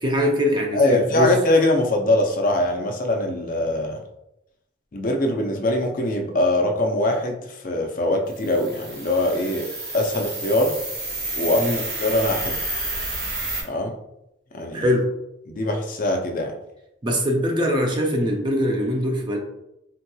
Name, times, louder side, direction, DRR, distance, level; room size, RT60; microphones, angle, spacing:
voice 1, 0.0-1.3 11.6-11.8 14.7-15.1 17.0-19.4, left 1 dB, 25° right, 1 dB, 0.5 m, -22 dB
voice 2, 0.7-4.0 4.9-9.7 9.9-10.8 11.3-12.6 13.6-13.9 14.5-14.8 15.5-16.5, left 1 dB, 45° left, 3 dB, 0.4 m, -22 dB
sound 1, 8.3-13.6, right 2 dB, 60° right, 1.1 m, -30 dB
3.6 x 2.8 x 2.2 m, 0.83 s
head